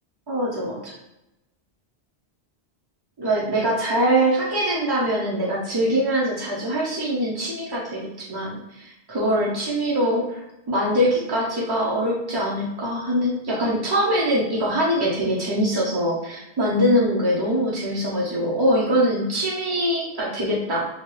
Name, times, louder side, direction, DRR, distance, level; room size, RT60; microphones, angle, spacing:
voice 1, 0.3-0.9 3.2-20.9, equal, 40° right, -4 dB, 0.3 m, -23 dB
2.9 x 2.2 x 3.1 m, 0.91 s
omnidirectional pair, 1.1 m